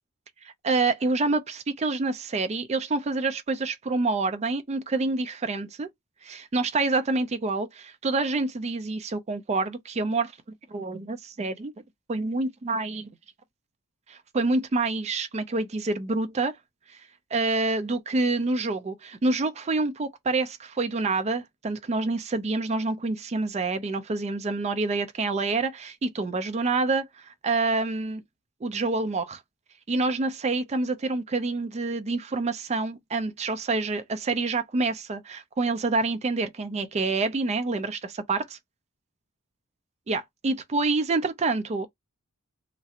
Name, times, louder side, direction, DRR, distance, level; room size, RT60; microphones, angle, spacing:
voice 1, 0.4-5.9 6.2-10.3 10.7-11.7 12.1-13.1 14.1-16.5 16.9-17.0 17.3-28.2 28.6-29.4 29.9-38.6 40.1-41.9, right 3 dB, 30° right, 0.4 m, -27 dB
3.0 x 2.4 x 2.7 m
head